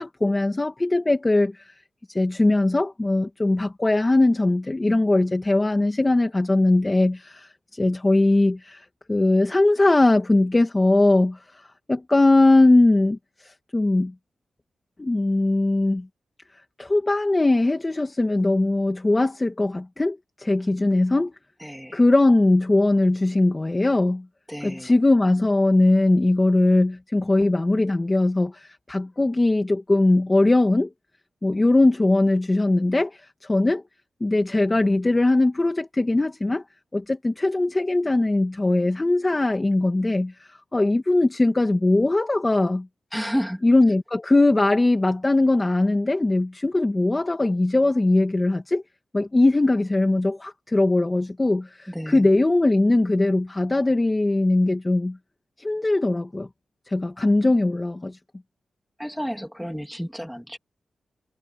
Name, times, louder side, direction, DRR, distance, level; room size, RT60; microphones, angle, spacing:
voice 1, 0.0-1.7 2.1-11.6 11.9-14.1 15.0-16.1 16.8-21.3 21.9-24.3 24.6-30.9 31.4-33.8 34.2-36.6 36.9-42.9 43.6-48.8 49.1-55.2 55.6-56.5 56.9-58.2, left 2 dB, 20° left, 2.0 m, -20 dB
voice 2, 21.6-22.0 24.5-24.9 43.1-43.6 51.9-52.3 57.0-57.1 59.0-60.6, equal, ahead, 2.9 m, -31 dB
wide cardioid pair, 120°, 0 cm